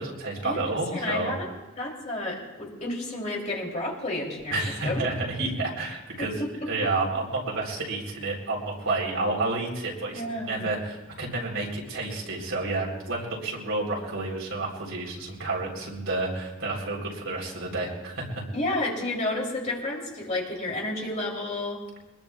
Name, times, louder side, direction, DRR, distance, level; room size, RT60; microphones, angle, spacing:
voice 1, 0.0-1.3 4.5-18.4, right 2 dB, 80° right, -2 dB, 3.8 m, -30 dB
voice 2, 0.9-1.5 1.8-4.6 4.8-5.0 6.4-6.7 10.1-10.7 18.5-21.8, left 2 dB, 35° left, -2 dB, 3.1 m, -31 dB
23.0 x 21.0 x 2.4 m, 1.1 s
head